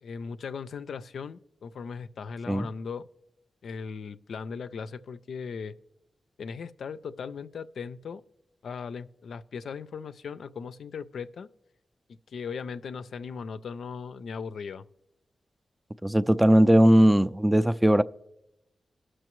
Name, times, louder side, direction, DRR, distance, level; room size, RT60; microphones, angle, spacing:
voice 1, 0.0-3.1 3.6-5.8 6.4-8.2 8.6-11.5 12.1-14.8, left 5 dB, 80° left, 0.4 m, -38 dB
voice 2, 16.0-18.0, right 1 dB, 10° right, 0.3 m, -19 dB
18.5 x 6.3 x 3.0 m
cardioid pair, 65°, 0 cm